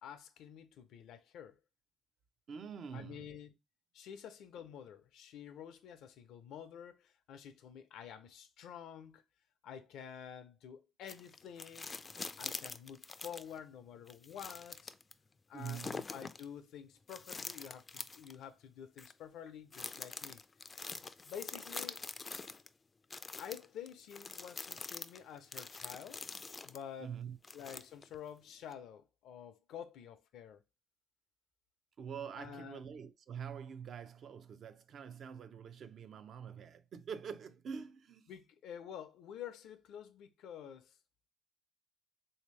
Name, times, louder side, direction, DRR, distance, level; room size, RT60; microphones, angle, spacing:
voice 1, 0.0-1.6 2.9-3.5 3.9-9.2 9.6-11.9 12.4-14.9 15.5-20.4 21.2-22.0 23.4-26.3 26.6-27.1 27.5-30.6 32.4-32.8 38.3-41.0, left 8 dB, 85° left, 0.5 m, -49 dB
voice 2, 2.5-3.2 15.5-16.0 27.0-27.4 32.0-38.3, right 7 dB, 60° right, 0.4 m, -45 dB
sound 1, 11.1-13.6 14.1-15.1 15.6-16.4 17.1-18.4 19.0-19.1 19.7-22.7 23.1-26.8 27.4-28.2 28.7-28.8, left 4 dB, 30° left, 0.3 m, -45 dB
3.4 x 2.8 x 3.2 m
cardioid pair, 90°, 0 cm